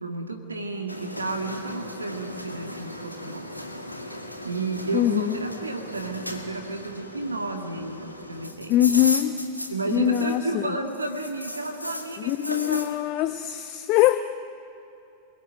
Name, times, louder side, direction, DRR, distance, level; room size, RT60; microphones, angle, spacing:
voice 1, 0.0-3.8 4.1-8.9 9.7-13.0, right 3 dB, 80° right, 4 dB, 2.0 m, -32 dB
sound 1, 0.9-10.6 10.8-12.9, left 1 dB, 85° left, 2.1 m, -36 dB
voice 2, 4.9-5.4 8.7-9.3 9.9-10.7 12.2-14.2, left 14 dB, 40° left, 10 dB, 0.8 m, -22 dB
28.5 x 22.0 x 9.2 m, 2.7 s
figure-of-eight pair, 90°, 0 cm